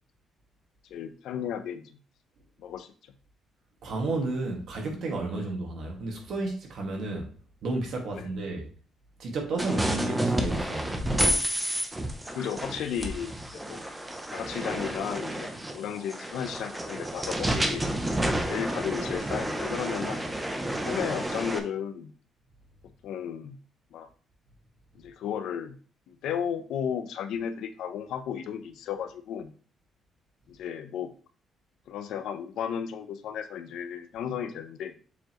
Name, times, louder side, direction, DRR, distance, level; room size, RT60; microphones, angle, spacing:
voice 1, 0.9-2.0 2.6-2.9 8.2-8.3 9.7-9.8 12.3-13.8 14.3-17.9 18.4-20.3 20.6-22.1 23.0-23.6 23.9-24.1 24.9-25.8 26.1-29.5 30.5-31.1 31.9-34.9, left 8 dB, 80° left, 0.7 m, -34 dB
voice 2, 3.8-7.3 7.6-8.7 9.2-11.1, right 2 dB, 55° right, 1.9 m, -32 dB
sound 1, 9.6-21.6, right 1 dB, 10° right, 0.8 m, -30 dB
7.0 x 4.9 x 3.1 m
cardioid pair, 170°, 0 cm